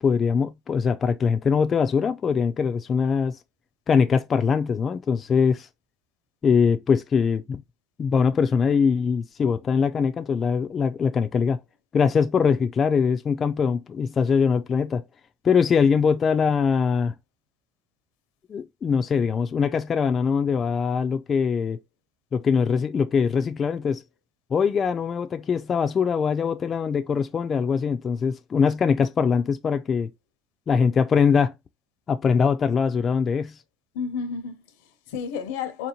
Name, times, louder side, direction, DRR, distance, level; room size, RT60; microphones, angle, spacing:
voice 1, 0.0-3.4 3.9-5.7 6.4-7.6 8.0-11.6 11.9-15.0 15.4-17.1 18.5-21.8 22.3-24.0 24.5-30.1 30.7-31.5 32.1-33.6, left 6 dB, 30° left, 0.3 m, -22 dB
voice 2, 33.9-35.9, left 6 dB, 90° left, 0.7 m, -32 dB
4.2 x 2.7 x 2.9 m
cardioid pair, 135°, 0 cm